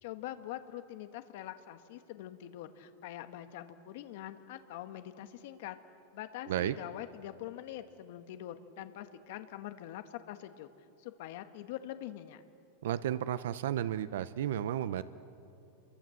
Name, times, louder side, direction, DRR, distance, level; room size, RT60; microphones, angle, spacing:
voice 1, 0.0-5.8 6.1-10.7 11.0-12.4, left 12 dB, 55° left, 9 dB, 1.4 m, -44 dB
voice 2, 12.8-15.0, right 11 dB, 75° right, 14 dB, 0.7 m, -33 dB
29.5 x 23.5 x 7.8 m, 2.9 s
supercardioid pair, 165°, 0 cm